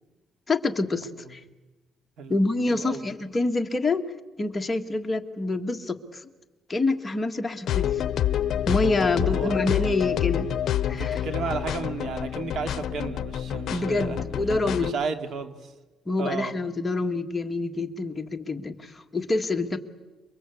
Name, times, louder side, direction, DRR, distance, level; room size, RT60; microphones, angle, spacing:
voice 1, 0.5-1.4 2.3-4.1 4.4-6.3 6.7-8.0 8.6-10.5 10.9-11.2 13.7-15.0 16.1-19.8, left 2 dB, 15° left, 4 dB, 1.7 m, -27 dB
voice 2, 2.7-3.1 9.0-9.9 10.9-14.2 14.7-15.7 16.2-16.5, right 4 dB, 60° right, 7 dB, 2.5 m, -33 dB
sound 1, 7.7-14.9, left 10 dB, 60° left, 0.8 m, -28 dB
29.0 x 22.5 x 8.5 m, 1.1 s
cardioid pair, 150°, 0 cm